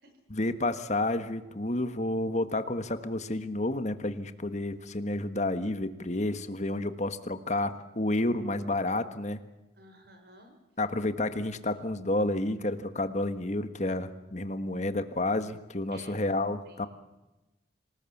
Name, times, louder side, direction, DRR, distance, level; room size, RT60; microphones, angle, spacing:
voice 1, 0.3-9.4 10.8-16.9, left 2 dB, 40° left, 10 dB, 1.5 m, -30 dB
voice 2, 9.7-10.5 15.9-16.9, right 1 dB, 55° right, 6 dB, 6.1 m, -53 dB
27.0 x 19.5 x 7.3 m, 1.0 s
head